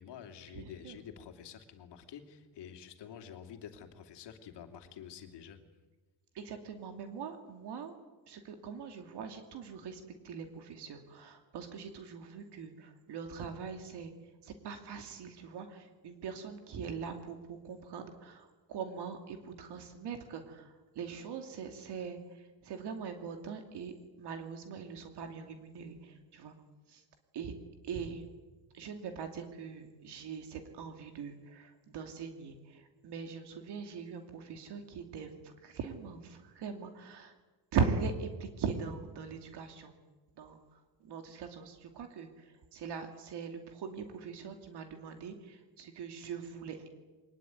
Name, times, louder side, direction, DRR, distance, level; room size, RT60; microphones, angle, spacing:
voice 1, 0.0-5.6, left 8 dB, 60° left, 6 dB, 2.9 m, -49 dB
voice 2, 0.5-1.0 6.3-7.9 8.3-14.1 14.4-26.5 26.9-27.0 27.3-27.5 27.8-28.2 28.7-37.3 37.7-40.0 40.4-46.9, right 5 dB, 60° right, 5 dB, 2.7 m, -41 dB
23.0 x 19.5 x 9.4 m, 1.2 s
cardioid pair, 135°, 46 cm